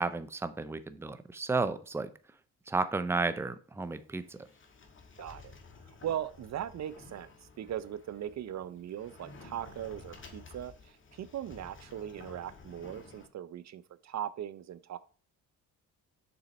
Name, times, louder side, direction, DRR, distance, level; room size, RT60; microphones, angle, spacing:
voice 1, 0.0-2.1 2.7-4.4, right 3 dB, 5° right, 13 dB, 0.5 m, -32 dB
Sliding door, 3.8-13.3, left 4 dB, 35° left, 1.7 m, -53 dB
voice 2, 5.2-5.5 5.9-15.0, right 10 dB, 50° right, 16 dB, 0.5 m, -39 dB
6.9 x 4.1 x 5.2 m, 0.40 s
cardioid pair, 95°, 35 cm